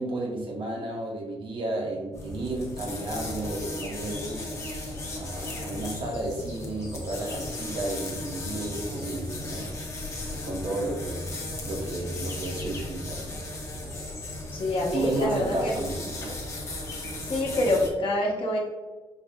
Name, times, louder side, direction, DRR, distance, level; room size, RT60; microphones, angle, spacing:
voice 1, 0.0-4.5 5.1-9.7 10.3-11.3 11.7-13.4 14.9-16.3, right 2 dB, 60° right, -1 dB, 1.0 m, -32 dB
sound 1, 2.1-17.9, left 1 dB, 30° left, 0.7 m, -36 dB
voice 2, 14.5-15.8 17.2-18.6, left 1 dB, 60° left, -2 dB, 1.0 m, -26 dB
4.6 x 2.1 x 3.5 m, 1.2 s
wide cardioid pair, 135°, 10 cm